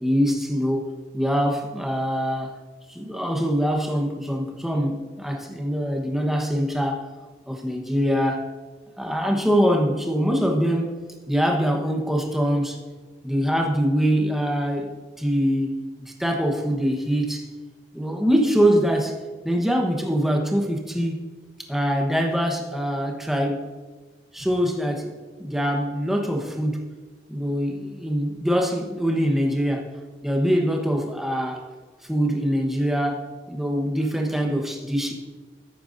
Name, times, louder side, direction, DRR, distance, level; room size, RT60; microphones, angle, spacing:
voice 1, 0.0-0.9 1.1-2.5 2.9-7.0 7.5-8.4 9.0-10.9 11.3-12.8 13.2-14.9 15.2-15.8 16.2-17.5 17.9-19.2 19.4-21.2 21.6-23.7 24.3-25.1 25.4-26.9 27.3-29.9 30.2-31.7 32.0-35.1, equal, ahead, 1 dB, 1.1 m, -23 dB
16.0 x 8.9 x 2.6 m, 1.3 s
head